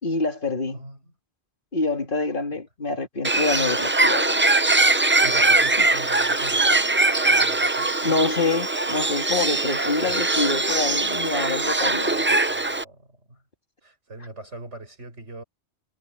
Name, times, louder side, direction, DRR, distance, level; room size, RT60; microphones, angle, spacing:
voice 1, 0.0-0.8 1.7-4.4 8.0-12.6, left 3 dB, 45° left, 2.5 m, -26 dB
voice 2, 0.7-1.1 2.5-2.6 5.2-8.2 10.1-10.5 12.5-13.4 13.8-15.4, right 1 dB, 90° right, 5.8 m, -41 dB
Bird, 3.2-12.8, right 2 dB, 20° right, 0.3 m, -21 dB
omnidirectional pair, 1.2 m